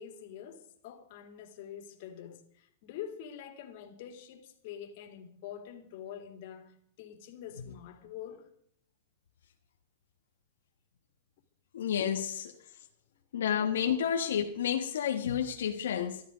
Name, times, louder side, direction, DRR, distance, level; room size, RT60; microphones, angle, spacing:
voice 1, 0.0-8.5 12.7-12.8, left 9 dB, 55° left, 2.4 m, -46 dB
voice 2, 11.7-12.5 13.3-16.2, left 8 dB, 90° left, 1.3 m, -30 dB
13.5 x 12.5 x 5.1 m
supercardioid pair, 140°, 0 cm